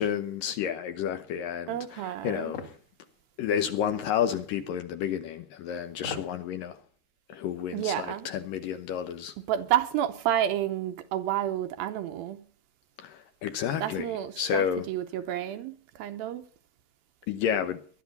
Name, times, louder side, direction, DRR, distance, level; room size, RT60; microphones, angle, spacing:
voice 1, 0.0-2.6 3.4-6.8 7.3-9.3 13.0-14.1 14.4-14.9 17.3-17.8, left 8 dB, 70° left, 2.2 m, -30 dB
voice 2, 1.7-2.5 7.7-8.3 9.5-12.4 13.8-16.4, right 11 dB, 75° right, 2.4 m, -30 dB
sound 1, 2.5-2.8 4.3-4.5 5.9-6.4 6.8-6.9, left 5 dB, 45° left, 2.7 m, -38 dB
20.5 x 12.0 x 4.1 m
omnidirectional pair, 4.7 m